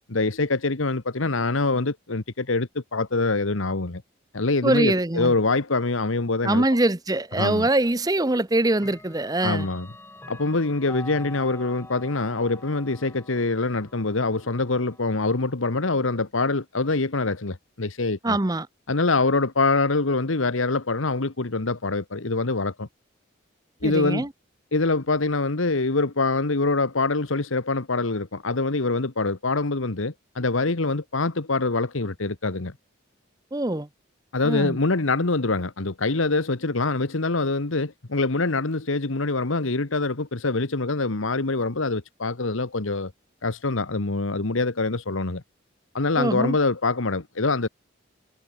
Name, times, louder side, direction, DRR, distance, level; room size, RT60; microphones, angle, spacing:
voice 1, 0.1-4.0 4.3-6.6 7.4-7.7 9.4-9.9 10.3-18.4 18.9-22.9 23.8-24.3 24.7-32.7 34.3-43.1 43.4-45.4 45.9-47.7, left 3 dB, 80° left, 1.4 m, -24 dB
voice 2, 4.6-5.3 6.4-9.7 18.2-18.7 23.8-24.3 33.5-33.9 34.4-34.8 46.2-46.6, right 1 dB, 20° right, 0.8 m, -23 dB
Clock, 7.4-7.5 8.7-15.5, left 1 dB, 10° left, 2.4 m, -45 dB
head